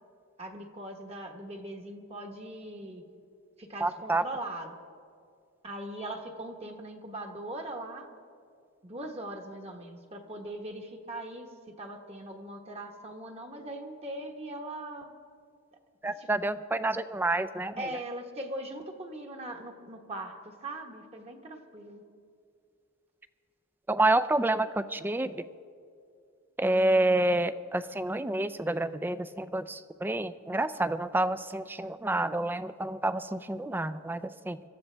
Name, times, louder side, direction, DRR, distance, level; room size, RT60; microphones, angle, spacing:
voice 1, 0.4-3.0 3.6-4.8 5.6-8.1 8.8-11.5 11.8-15.1 16.2-16.3 17.8-22.0, right 1 dB, 30° right, 3 dB, 1.2 m, -40 dB
voice 2, 3.8-4.2 16.0-17.9 23.9-25.5 26.6-34.6, right 2 dB, 10° right, 13 dB, 0.3 m, -28 dB
25.0 x 13.5 x 3.3 m, 2.4 s
head